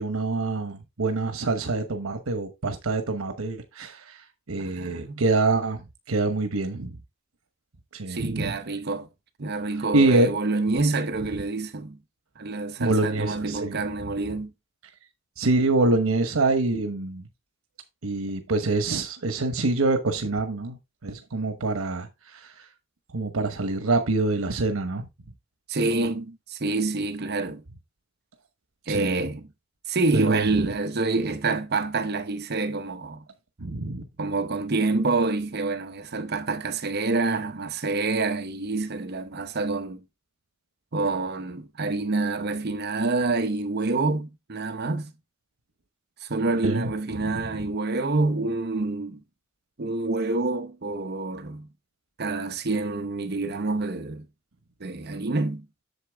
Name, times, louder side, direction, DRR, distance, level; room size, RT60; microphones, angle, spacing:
voice 1, 0.0-4.2 4.5-5.8 6.1-6.9 7.9-8.5 9.9-10.4 12.8-13.8 15.4-17.2 18.0-20.8 21.0-22.7 23.1-25.0 28.9-29.2 30.1-30.7 33.6-34.0 46.6-46.8 47.2-47.4, right 2 dB, 90° right, 1.0 m, -25 dB
voice 2, 4.6-5.2 8.1-9.1 9.4-12.0 12.4-14.5 25.7-27.6 28.9-29.5 29.9-33.2 34.2-40.0 40.9-45.1 46.2-49.2 49.8-51.7 52.2-54.3 54.8-55.7, right 3 dB, 50° right, 0.8 m, -27 dB
8.3 x 6.8 x 3.5 m
head